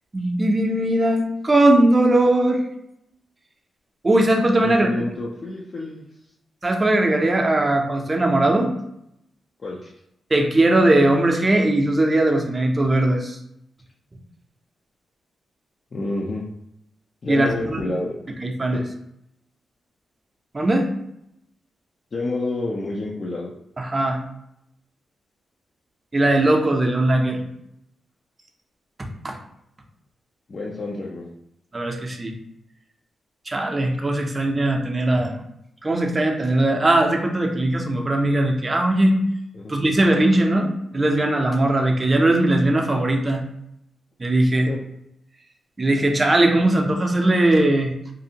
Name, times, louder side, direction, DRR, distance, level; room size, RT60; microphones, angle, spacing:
voice 1, 0.1-2.6 4.0-4.9 6.6-8.7 10.3-13.4 17.3-17.8 18.4-18.8 20.5-20.9 23.8-24.2 26.1-27.4 29.2-29.4 31.7-32.3 33.5-35.4 35.8-39.2 39.7-43.4 44.2-44.7 45.8-47.9, right 1 dB, 30° right, 2 dB, 0.5 m, -19 dB
voice 2, 4.6-6.1 9.6-9.9 15.9-16.5 17.2-18.1 18.7-18.8 22.1-23.5 30.5-31.3 39.5-39.8 44.7-44.8, left 2 dB, 50° left, -3 dB, 0.5 m, -29 dB
2.6 x 2.4 x 2.8 m, 0.78 s
cardioid pair, 70°, 0 cm